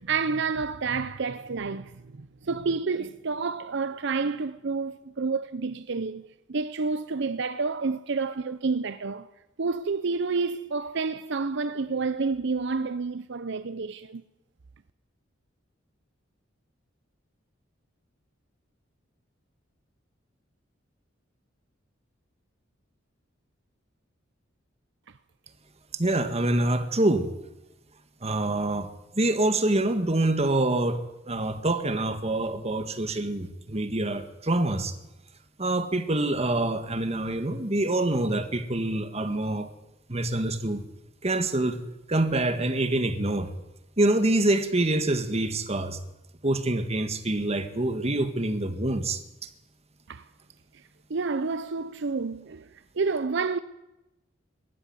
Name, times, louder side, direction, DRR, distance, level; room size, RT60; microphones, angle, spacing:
voice 1, 0.0-9.3 9.6-14.2 50.1-50.3 51.1-53.6, right 4 dB, 65° right, 0.7 m, -29 dB
voice 2, 25.9-27.3 28.2-34.9 35.6-39.7 40.1-40.8 41.2-43.5 44.0-46.0 46.4-49.5, right 2 dB, 35° right, 1.7 m, -26 dB
21.5 x 13.0 x 9.5 m
head